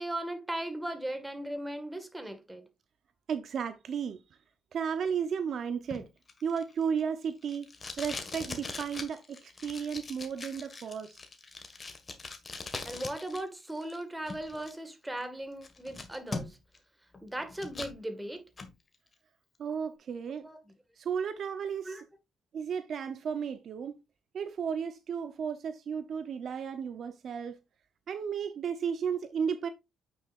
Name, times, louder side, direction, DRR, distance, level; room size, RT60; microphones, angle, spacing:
voice 1, 0.0-2.7 12.8-16.6 17.2-18.4 20.4-20.7 21.8-22.0, right 1 dB, 10° right, 1.7 m, -38 dB
voice 2, 3.3-4.2 4.7-6.1 6.4-7.7 8.0-9.4 9.6-11.2 19.6-20.5 21.0-22.0 22.5-24.0 24.3-27.6 28.1-29.7, right 7 dB, 60° right, 0.7 m, -33 dB
Packing tape duct tape, 5.9-13.4 13.7-14.7 15.2-15.3 15.6-16.8 17.1-18.0 18.4-18.7, left 3 dB, 35° left, 1.6 m, -42 dB
8.9 x 6.4 x 2.5 m
cardioid pair, 90°, 0 cm